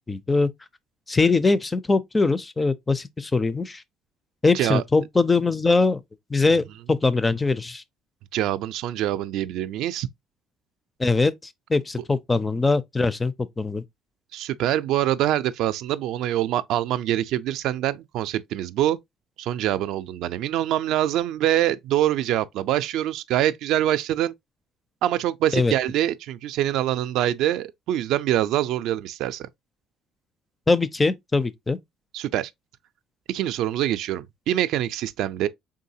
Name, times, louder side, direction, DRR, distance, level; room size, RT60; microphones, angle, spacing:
voice 1, 0.1-0.5 1.1-3.8 4.4-6.0 6.3-7.8 11.0-11.3 11.7-13.8 25.5-25.7 30.7-31.8, left 3 dB, 15° left, 0.4 m, -22 dB
voice 2, 8.3-10.1 14.3-19.0 19.4-24.3 25.0-29.5 32.1-32.5 33.3-35.5, right 12 dB, 70° right, 0.4 m, -24 dB
4.6 x 3.7 x 2.7 m
cardioid pair, 155°, 0 cm